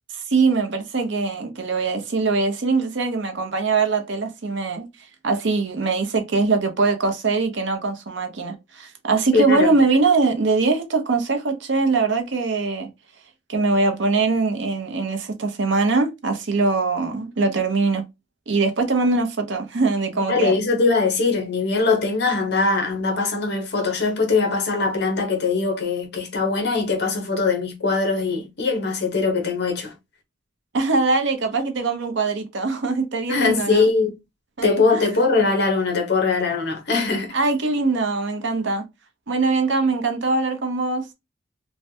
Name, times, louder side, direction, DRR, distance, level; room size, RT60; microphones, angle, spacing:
voice 1, 0.1-4.9 5.2-12.9 13.5-18.0 18.5-20.5 30.7-33.9 34.6-35.1 37.3-38.8 39.3-41.0, right 3 dB, 60° right, 0.6 m, -22 dB
voice 2, 9.3-9.7 20.3-29.9 33.3-34.1 34.6-37.3, left 4 dB, 55° left, 0.9 m, -21 dB
3.2 x 2.2 x 2.7 m
head